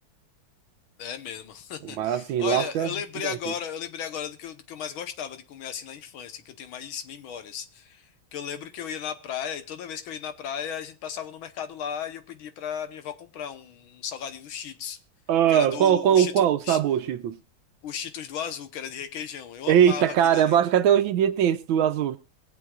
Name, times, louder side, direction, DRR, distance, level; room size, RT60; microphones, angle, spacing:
voice 1, 1.0-15.0 15.5-16.8 17.8-20.6, left 8 dB, 70° left, 1.7 m, -35 dB
voice 2, 1.8-2.9 3.3-3.4 15.3-17.4 19.7-22.2, right 9 dB, 70° right, 1.4 m, -21 dB
23.0 x 7.8 x 2.4 m
omnidirectional pair, 2.4 m